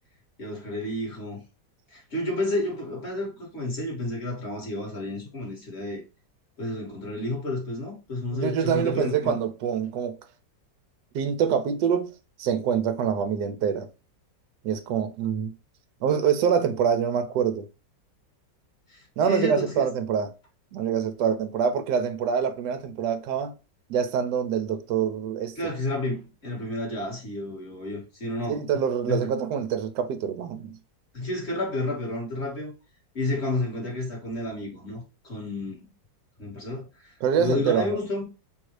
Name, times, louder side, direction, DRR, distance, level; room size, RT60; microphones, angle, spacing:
voice 1, 0.4-1.4 1.9-6.0 6.6-9.4 18.9-19.9 25.6-28.6 29.1-29.2 31.1-32.7 33.1-35.9 36.4-38.2, left 2 dB, 35° left, 2.2 m, -31 dB
voice 2, 8.3-10.2 11.1-12.1 12.4-13.9 14.6-15.5 16.0-17.7 19.2-20.3 20.7-23.5 23.9-25.6 28.5-30.8 37.2-38.0, right 7 dB, 75° right, 1.3 m, -25 dB
3.9 x 2.7 x 4.6 m
omnidirectional pair, 1.9 m